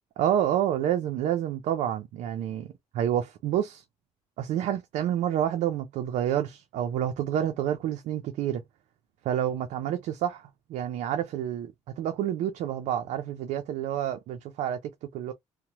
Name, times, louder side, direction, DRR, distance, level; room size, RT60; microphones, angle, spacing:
voice 1, 0.2-2.7 2.9-3.8 4.4-8.6 9.2-14.8 15.1-15.3, right 10 dB, 85° right, 0.5 m, -28 dB
2.9 x 2.1 x 2.7 m
cardioid pair, 85°, 12 cm